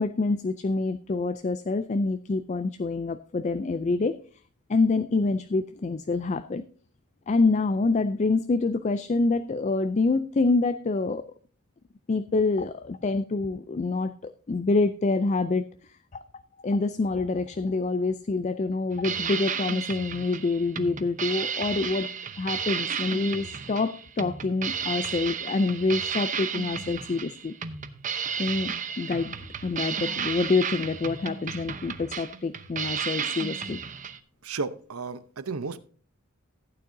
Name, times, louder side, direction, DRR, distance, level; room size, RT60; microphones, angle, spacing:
voice 1, 0.0-4.2 4.7-6.7 7.3-11.3 12.1-15.7 16.1-16.2 16.6-22.1 22.4-27.5 28.4-33.8, left 3 dB, 35° left, 12 dB, 0.4 m, -26 dB
sound 1, 18.9-34.2, right 7 dB, 35° right, 0.7 m, -33 dB
voice 2, 34.4-35.8, right 4 dB, 90° right, 14 dB, 0.8 m, -33 dB
15.0 x 9.1 x 2.7 m, 0.42 s
head